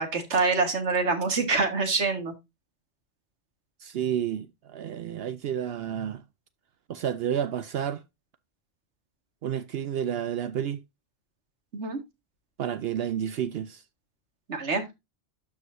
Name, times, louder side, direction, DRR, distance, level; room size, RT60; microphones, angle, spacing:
voice 1, 0.0-2.3 11.7-12.0 14.5-14.8, right 4 dB, 80° right, 1.9 m, -25 dB
voice 2, 3.8-6.2 6.9-8.0 9.4-10.8 12.6-13.8, right 9 dB, 65° right, 0.8 m, -30 dB
12.5 x 4.9 x 2.6 m
omnidirectional pair, 1.1 m